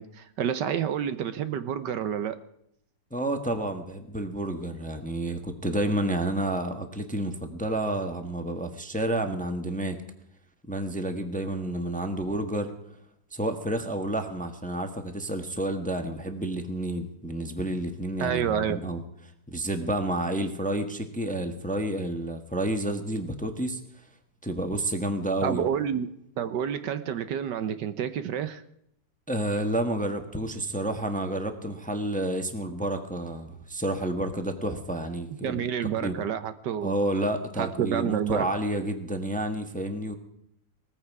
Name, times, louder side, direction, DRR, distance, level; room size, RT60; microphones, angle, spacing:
voice 1, 0.0-2.4 18.2-18.8 25.4-26.1 26.4-28.6 35.4-36.9 37.6-38.4, right 8 dB, 70° right, 12 dB, 1.4 m, -29 dB
voice 2, 3.1-10.0 10.7-12.7 13.3-19.0 19.5-23.8 24.4-25.7 29.3-35.6 36.0-36.2 36.8-40.1, right 1 dB, 5° left, 6 dB, 1.1 m, -30 dB
19.5 x 14.5 x 4.8 m, 0.75 s
omnidirectional pair, 2.0 m